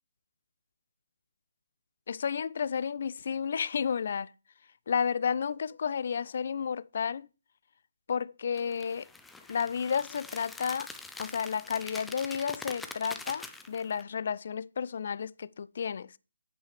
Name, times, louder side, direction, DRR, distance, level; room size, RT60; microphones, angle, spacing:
voice 1, 2.1-4.3 4.9-7.3 8.1-9.1 9.5-10.9 11.2-16.1, left 6 dB, 50° left, 0.4 m, -32 dB
sound 1, 8.6-14.0, left 3 dB, 5° left, 0.6 m, -44 dB
9.5 x 8.1 x 3.2 m
figure-of-eight pair, 145°, 0 cm